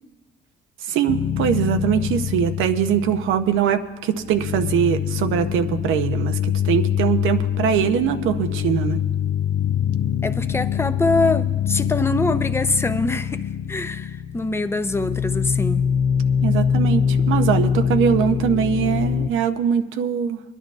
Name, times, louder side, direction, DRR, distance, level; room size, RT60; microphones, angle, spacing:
voice 1, 0.9-9.0 16.4-20.4, right 8 dB, 90° right, 8 dB, 0.7 m, -22 dB
sound 1, 1.1-3.9 4.2-19.3, left 8 dB, 60° left, 0.4 m, -24 dB
voice 2, 10.2-15.8, left 2 dB, 10° left, 9 dB, 0.6 m, -24 dB
25.0 x 11.0 x 2.4 m, 1.3 s
cardioid pair, 90°, 20 cm